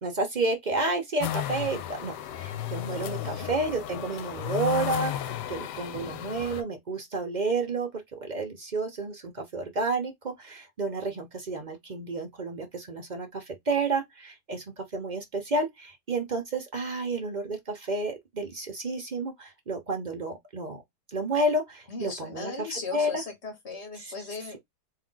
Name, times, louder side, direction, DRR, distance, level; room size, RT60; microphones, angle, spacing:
voice 1, 0.0-20.8 21.1-23.2 24.0-24.1, right 2 dB, 60° right, 0.4 m, -31 dB
sound 1, 1.2-6.6, left 12 dB, 85° left, 1.2 m, -34 dB
voice 2, 2.9-3.5 21.9-24.6, left 4 dB, 40° left, 1.8 m, -38 dB
3.7 x 2.6 x 3.7 m
omnidirectional pair, 1.8 m